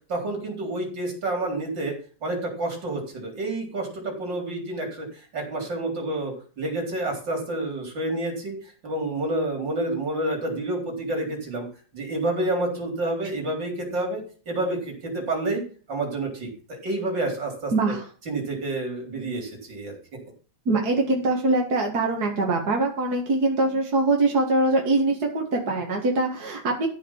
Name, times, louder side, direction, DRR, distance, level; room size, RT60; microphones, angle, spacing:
voice 1, 0.1-1.9 2.2-11.7 11.9-14.2 14.5-15.6 15.9-17.9 18.3-20.0, right 2 dB, 85° right, 2 dB, 4.6 m, -29 dB
voice 2, 17.7-18.0 20.7-26.9, right 2 dB, 60° right, 0 dB, 2.5 m, -23 dB
14.0 x 5.3 x 7.3 m, 0.40 s
omnidirectional pair, 1.9 m